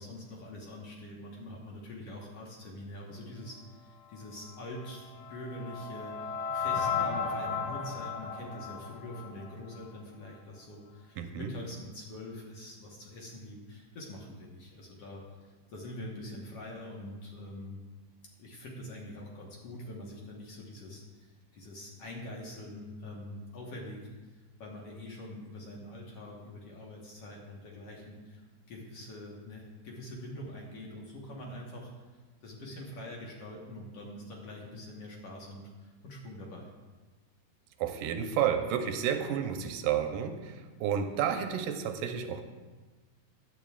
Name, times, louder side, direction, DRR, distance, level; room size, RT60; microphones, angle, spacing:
voice 1, 0.0-17.8 18.4-24.0 24.6-31.9 32.4-36.7, left 1 dB, 55° left, -2 dB, 2.0 m, -44 dB
sound 1, 4.8-10.0, left 5 dB, 75° left, 2.0 m, -35 dB
voice 2, 11.2-11.5 37.8-42.4, right 8 dB, 85° right, 6 dB, 2.3 m, -31 dB
16.0 x 11.0 x 2.4 m, 1.3 s
omnidirectional pair, 3.9 m